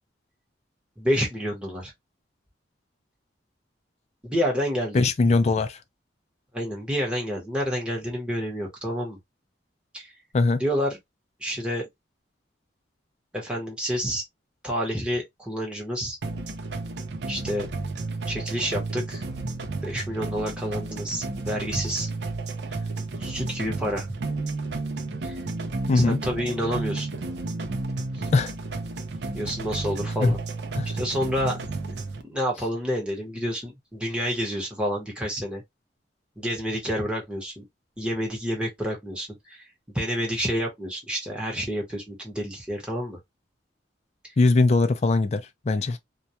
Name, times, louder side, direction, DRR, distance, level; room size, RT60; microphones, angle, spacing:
voice 1, 1.0-1.9 4.2-5.0 6.5-9.2 9.9-10.1 10.6-11.0 11.4-11.9 13.3-14.2 14.6-16.2 17.3-17.7 18.3-19.2 19.7-22.1 23.2-24.1 25.2-25.4 25.9-27.1 28.1-28.3 29.3-30.4 30.9-31.6 31.9-32.0 32.2-35.6 36.4-37.6 38.0-39.7 39.9-43.2 44.2-44.3, equal, 5° right, 0.9 m, -29 dB
voice 2, 4.9-5.8 10.3-10.6 25.9-26.2 28.3-28.5 30.2-30.4 30.7-30.9 44.4-46.0, left 3 dB, 35° left, 0.3 m, -21 dB
sound 1, 16.2-32.2, right 3 dB, 60° right, 0.5 m, -32 dB
2.2 x 2.2 x 2.7 m
head